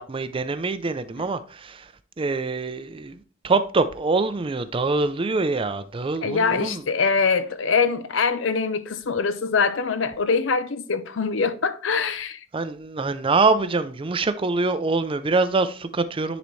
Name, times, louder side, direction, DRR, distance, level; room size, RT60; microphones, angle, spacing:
voice 1, 0.0-1.9 2.2-3.2 3.4-6.8 12.5-16.4, right 3 dB, 30° right, 0.5 m, -24 dB
voice 2, 6.2-12.4, left 5 dB, 80° left, 0.6 m, -23 dB
10.0 x 4.0 x 3.2 m
head